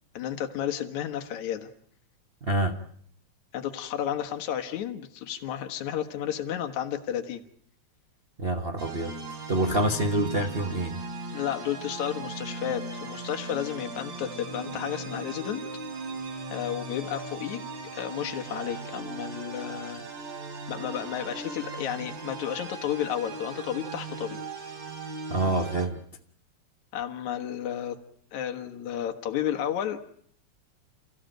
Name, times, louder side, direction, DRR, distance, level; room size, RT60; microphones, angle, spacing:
voice 1, 0.1-1.7 3.5-7.4 11.3-15.6 16.5-17.6 17.9-20.0 20.7-24.4 26.9-28.0 28.3-30.0, left 10 dB, 75° left, 5 dB, 2.7 m, -32 dB
voice 2, 2.4-2.8 8.4-9.1 9.5-11.0 25.3-26.0, right 1 dB, 45° right, 4 dB, 0.7 m, -26 dB
sound 1, 8.8-25.9, right 3 dB, 70° right, 4.9 m, -38 dB
30.0 x 15.0 x 9.0 m, 0.63 s
omnidirectional pair, 3.3 m